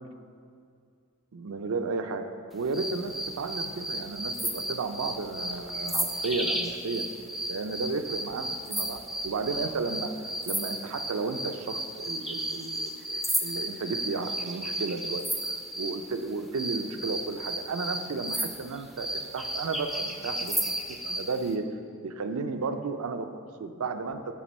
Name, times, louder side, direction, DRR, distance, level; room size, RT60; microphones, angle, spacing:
voice 1, 1.3-2.2 2.5-7.1 7.5-10.1 10.5-15.2 15.8-20.7 21.0-21.6 22.0-24.2, right 4 dB, 85° right, 7 dB, 0.5 m, -33 dB
sound 1, 2.7-16.0 16.5-21.3, right 1 dB, ahead, 0.3 m, -33 dB
9.3 x 4.3 x 4.2 m, 2.2 s
head